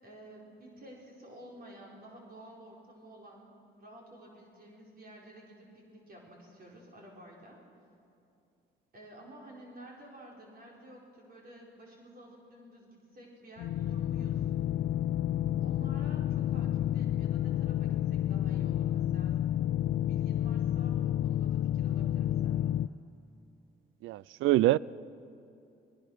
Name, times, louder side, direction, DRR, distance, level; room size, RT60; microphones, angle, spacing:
voice 1, 0.0-3.5 3.8-7.6 8.9-14.4 15.6-19.4 20.0-22.8, right 1 dB, 50° right, 4.7 m, -52 dB
sound 1, 13.6-22.9, left 11 dB, 70° left, 0.5 m, -30 dB
voice 2, 24.0-24.8, right 16 dB, 85° right, 0.4 m, -25 dB
26.0 x 19.5 x 6.4 m
cardioid pair, 90°, 20 cm